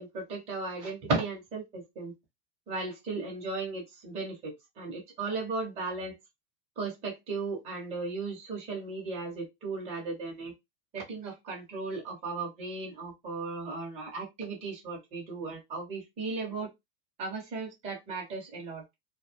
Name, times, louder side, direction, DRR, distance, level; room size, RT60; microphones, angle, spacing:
voice 1, 0.0-2.1 2.7-6.1 6.8-10.5 10.9-16.7 17.2-18.9, right 3 dB, 15° right, 0.4 m, -36 dB
2.3 x 2.0 x 2.6 m
supercardioid pair, 165°, 49 cm